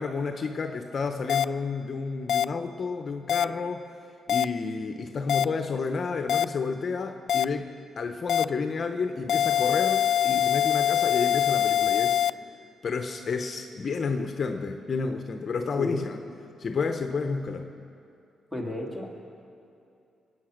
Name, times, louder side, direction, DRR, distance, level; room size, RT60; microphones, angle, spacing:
voice 1, 0.0-3.8 4.3-7.7 8.0-12.2 12.8-16.2 16.6-17.7, left 4 dB, 45° left, 6 dB, 0.9 m, -30 dB
sound 1, 1.3-1.4 2.3-2.4 3.3-3.4 4.3-4.4 5.3-5.4 6.3-6.4 7.3-7.4 8.3-8.4 9.3-12.3, left 10 dB, 70° left, 0.3 m, -23 dB
voice 2, 18.5-19.1, left 1 dB, 5° right, 0 dB, 2.8 m, -33 dB
23.0 x 9.4 x 6.5 m, 2.6 s
cardioid pair, 100°, 0 cm